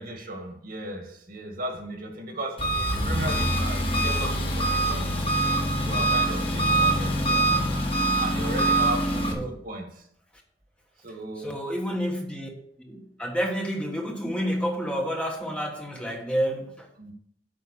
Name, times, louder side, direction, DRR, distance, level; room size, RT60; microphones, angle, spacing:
voice 1, 0.0-5.1 5.8-7.6 8.2-9.9 11.0-11.5 17.0-17.1, right 1 dB, 55° right, 2.1 m, -36 dB
Engine, 2.6-9.3, right 1 dB, 35° left, 1.9 m, -24 dB
voice 2, 8.7-9.6 11.4-12.5 12.8-17.1, equal, 5° left, 1.4 m, -30 dB
8.7 x 5.7 x 7.2 m
head